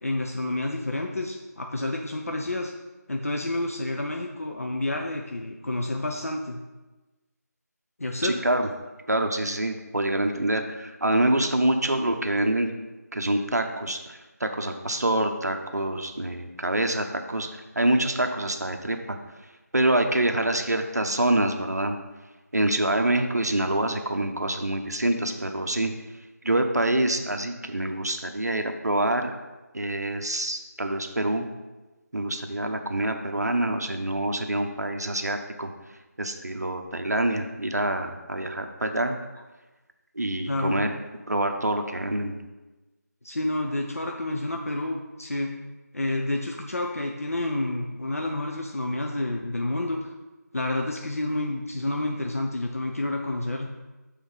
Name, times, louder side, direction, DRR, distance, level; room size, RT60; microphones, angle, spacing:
voice 1, 0.0-2.7 3.1-6.6 8.0-8.3 40.5-40.8 43.2-45.5 45.9-50.0 50.5-53.7, left 2 dB, 55° left, 2 dB, 0.6 m, -29 dB
voice 2, 8.2-8.7 9.1-12.7 13.1-19.2 19.7-22.0 22.5-25.9 26.4-29.3 29.7-31.5 32.1-35.7 36.2-39.2 40.2-40.9 41.3-42.4, right 1 dB, 65° right, 5 dB, 0.8 m, -26 dB
7.0 x 3.6 x 5.5 m, 1.1 s
figure-of-eight pair, 165°, 9 cm